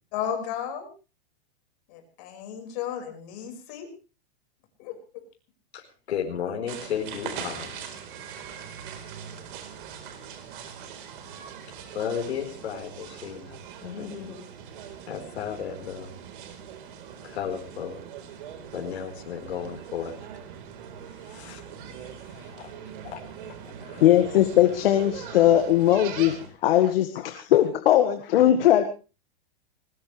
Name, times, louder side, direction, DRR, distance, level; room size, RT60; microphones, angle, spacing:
voice 1, 0.1-0.9 1.9-3.9 4.8-4.9, left 9 dB, 40° left, 4 dB, 5.5 m, -33 dB
voice 2, 5.7-7.9 11.6-14.4 15.1-16.1 17.2-18.0 18.7-20.1 21.2-21.6 22.0-22.7 23.0-23.2 23.6-24.0, left 8 dB, 80° left, 0 dB, 4.6 m, -34 dB
sound 1, 6.7-26.5, right 8 dB, 50° right, 4.3 m, -41 dB
voice 3, 24.0-26.3 26.6-28.8, left 12 dB, 60° left, 7 dB, 1.9 m, -19 dB
21.0 x 20.0 x 3.4 m, 0.35 s
supercardioid pair, 160°, 32 cm